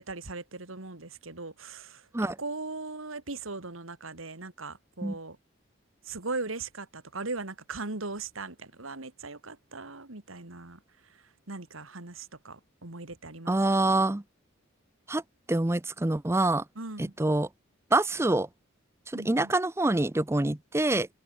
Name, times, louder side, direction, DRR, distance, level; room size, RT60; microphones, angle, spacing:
voice 1, 0.0-5.4 6.1-10.8 11.5-13.6 13.8-14.0 16.8-17.1 19.1-19.5, right 3 dB, 85° right, 2.5 m, -39 dB
voice 2, 13.5-14.2 15.1-15.2 15.5-16.6 17.0-17.5 17.9-18.5 19.1-21.1, right 2 dB, 15° right, 0.5 m, -26 dB
head